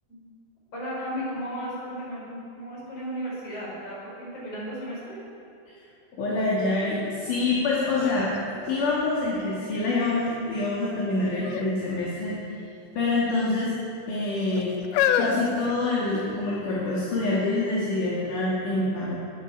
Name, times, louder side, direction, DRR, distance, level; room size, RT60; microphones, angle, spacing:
voice 1, 0.7-5.2, equal, 35° left, -6 dB, 5.9 m, -35 dB
voice 2, 6.2-8.3 8.7-12.4 13.0-13.7 14.1-14.7 15.2-19.2, left 2 dB, 55° left, -6 dB, 3.6 m, -26 dB
sound 1, 7.4-7.5 7.9-9.4 10.0-10.5 11.4-11.7 12.0-12.2 13.0-13.7 14.4-16.4 17.2-17.3, left 8 dB, 80° left, 2.6 m, -29 dB
20.0 x 12.5 x 4.9 m, 2.6 s
omnidirectional pair, 4.8 m